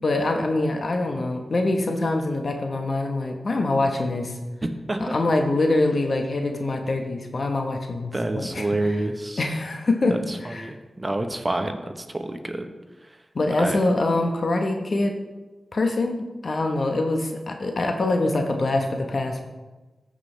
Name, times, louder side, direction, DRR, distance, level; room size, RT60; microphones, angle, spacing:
voice 1, 0.0-4.3 5.0-8.8 9.4-10.7 13.3-15.1 15.7-19.4, left 2 dB, 60° left, 4 dB, 1.2 m, -24 dB
voice 2, 4.6-5.2 8.1-9.4 10.1-11.8 12.1-12.6 13.6-13.8, right 2 dB, 30° right, 6 dB, 1.0 m, -28 dB
14.0 x 5.1 x 3.4 m, 1.2 s
cardioid pair, 40°, 0 cm